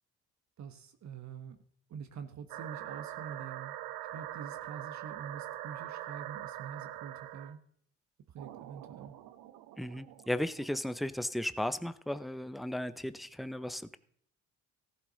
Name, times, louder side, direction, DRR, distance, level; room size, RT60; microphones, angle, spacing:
voice 1, 0.6-1.6 1.9-3.7 4.1-7.6 8.3-9.2, right 7 dB, 55° right, 7 dB, 1.2 m, -46 dB
sound 1, 2.5-7.5 8.4-10.8, right 13 dB, 70° right, 0.8 m, -43 dB
voice 2, 9.8-14.0, left 1 dB, ahead, 14 dB, 0.7 m, -35 dB
15.0 x 12.5 x 4.0 m, 0.63 s
hypercardioid pair, 60°, 34 cm